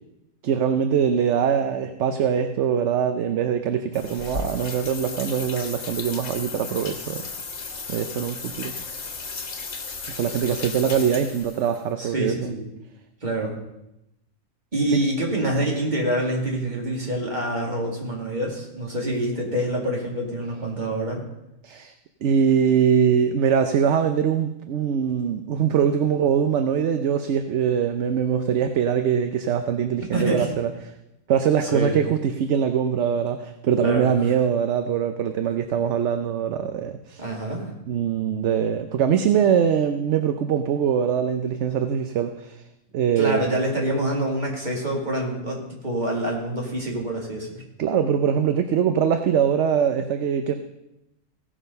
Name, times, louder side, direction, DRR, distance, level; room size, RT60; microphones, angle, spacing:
voice 1, 0.4-7.3 7.9-8.8 10.1-12.5 14.9-15.0 21.6-21.9 22.2-30.9 31.3-37.3 37.9-42.6 42.9-43.5 47.8-50.6, right 8 dB, 65° right, 8 dB, 0.9 m, -22 dB
sound 1, 3.9-11.8, left 4 dB, 60° left, 1.5 m, -35 dB
voice 2, 12.0-12.7 13.2-13.5 14.7-21.2 30.1-30.5 31.6-32.0 33.8-34.1 37.2-37.7 43.2-47.6, right 1 dB, 35° right, -1 dB, 2.5 m, -26 dB
16.5 x 6.3 x 5.3 m, 0.88 s
omnidirectional pair, 1.4 m